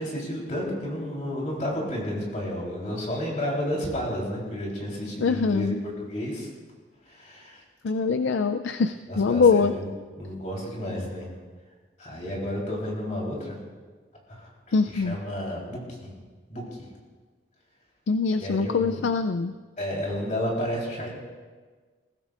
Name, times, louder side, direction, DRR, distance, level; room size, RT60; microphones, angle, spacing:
voice 1, 0.0-6.5 7.1-7.6 9.1-9.9 10.2-11.3 12.0-13.6 14.3-14.5 14.9-16.1 16.5-16.6 18.4-19.0 19.8-21.1, equal, 40° left, -3 dB, 3.7 m, -31 dB
voice 2, 5.2-5.8 7.8-9.7 14.7-15.2 18.1-19.5, left 5 dB, 75° left, 9 dB, 0.4 m, -23 dB
21.0 x 15.5 x 2.5 m, 1.4 s
head